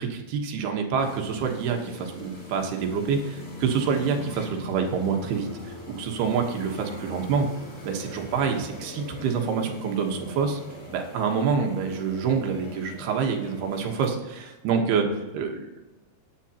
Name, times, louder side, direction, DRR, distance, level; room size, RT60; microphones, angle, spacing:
voice 1, 0.0-7.5 7.8-10.6 10.9-15.1 15.3-15.8, right 6 dB, 90° right, 3 dB, 3.3 m, -27 dB
sound 1, 1.0-14.1, left 2 dB, 20° left, 1.8 m, -41 dB
16.0 x 9.9 x 2.9 m, 1.1 s
omnidirectional pair, 4.4 m